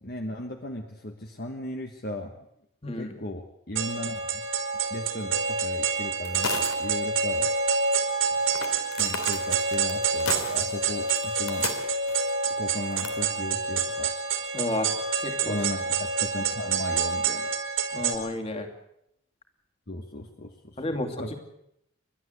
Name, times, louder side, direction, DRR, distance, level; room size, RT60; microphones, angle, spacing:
voice 1, 0.0-2.4 3.0-4.5 4.9-7.5 9.0-11.7 12.5-14.1 15.4-17.5 19.9-21.3, left 1 dB, 45° left, 3 dB, 1.4 m, -36 dB
voice 2, 2.8-3.2 14.5-14.9 15.2-15.6 17.9-18.7 20.8-21.4, left 1 dB, 30° left, 5 dB, 2.6 m, -31 dB
sound 1, 3.8-18.2, right 5 dB, 75° right, 4.0 m, -27 dB
sound 2, 6.2-7.0 7.2-7.3 8.5-12.3 12.9-13.1, left 5 dB, 85° left, 3.2 m, -34 dB
30.0 x 12.5 x 8.1 m, 0.78 s
head